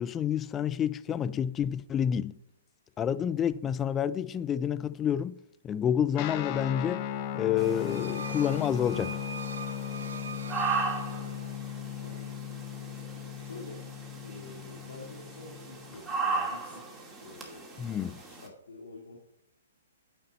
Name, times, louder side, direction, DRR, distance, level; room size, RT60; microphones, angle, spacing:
voice 1, 0.0-2.3 3.0-5.4 5.6-7.0 7.3-9.2 17.8-18.2, left 9 dB, 20° left, 0.4 m, -29 dB
Guitar, 6.1-16.0, left 10 dB, 35° left, 1.0 m, -37 dB
sound 1, 7.5-11.7, right 5 dB, 75° right, 0.5 m, -43 dB
sound 2, 7.6-18.5, right 4 dB, 10° right, 2.4 m, -38 dB
voice 2, 12.0-12.3 13.3-13.9 14.2-19.2, left 3 dB, 80° left, 2.2 m, -48 dB
9.3 x 9.3 x 4.2 m
hypercardioid pair, 125°, 0 cm